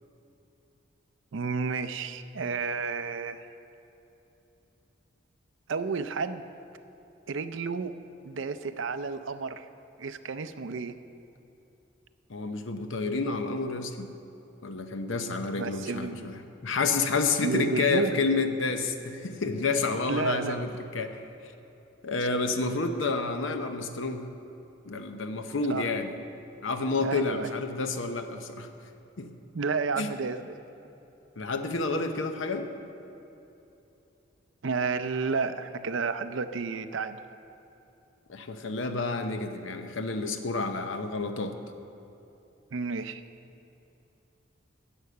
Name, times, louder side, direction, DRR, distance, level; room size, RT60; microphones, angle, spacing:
voice 1, 1.3-3.5 5.7-6.5 7.3-8.0 8.2-9.7 10.0-11.0 15.2-16.3 17.4-18.1 20.1-20.6 25.7-25.9 27.0-27.5 29.5-30.6 34.6-37.2 42.7-43.2, right 4 dB, 70° right, 11 dB, 0.5 m, -31 dB
voice 2, 12.3-14.1 14.6-16.3 16.6-21.2 22.0-24.3 24.9-26.1 26.6-28.7 29.2-29.3 30.0-30.1 31.4-32.7 38.3-41.6, left 3 dB, 70° left, 7 dB, 0.8 m, -29 dB
11.0 x 8.2 x 6.8 m, 2.9 s
head